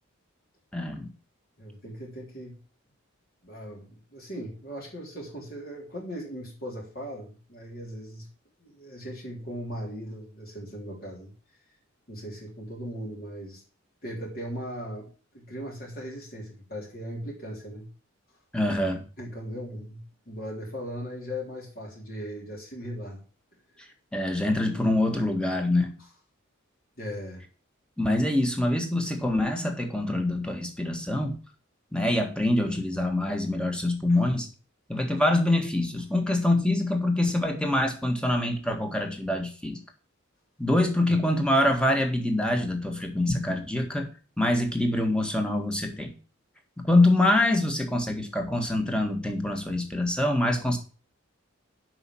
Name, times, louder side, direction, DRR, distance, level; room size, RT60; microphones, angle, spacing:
voice 1, 0.7-1.1 18.5-19.0 24.1-26.0 28.0-31.3 31.9-34.5 34.9-39.8 40.6-44.1 44.4-46.1 46.8-50.8, left 1 dB, 5° left, 3 dB, 1.8 m, -25 dB
voice 2, 1.6-2.5 3.4-8.3 8.6-11.3 12.1-13.6 14.0-17.9 19.2-23.2 23.7-23.8 27.0-27.4, equal, 45° left, -3 dB, 3.4 m, -38 dB
7.8 x 6.0 x 7.6 m, 0.37 s
head